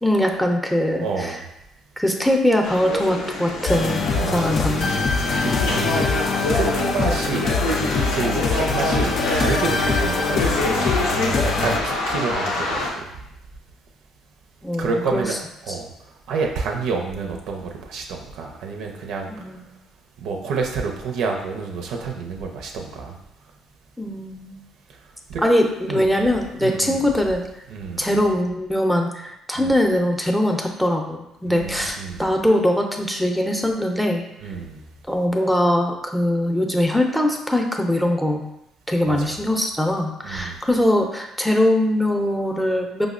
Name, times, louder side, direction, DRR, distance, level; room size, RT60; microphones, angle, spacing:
voice 1, 0.0-1.4 2.0-4.9 14.6-15.4 15.7-15.8 19.3-19.6 24.0-24.6 25.4-27.5 28.0-34.2 35.1-38.4 38.9-43.1, left 1 dB, 5° left, 2 dB, 0.5 m, -21 dB
voice 2, 1.0-1.4 4.1-4.5 5.4-6.0 6.5-7.5 8.1-13.0 14.8-15.4 15.6-15.9 16.3-18.0 18.3-19.3 20.2-23.2 25.3-25.4 25.9-26.1 26.6-27.1 27.7-28.2 29.6-29.8 31.5-32.2 34.4-34.8 39.0-39.4 40.2-40.6, right 4 dB, 75° right, 1 dB, 0.5 m, -29 dB
sound 1, 2.6-12.9, left 2 dB, 90° left, 0.6 m, -26 dB
sound 2, 3.7-11.8, left 4 dB, 50° left, 0.3 m, -23 dB
4.9 x 2.0 x 2.4 m, 0.84 s
supercardioid pair, 60°, 0 cm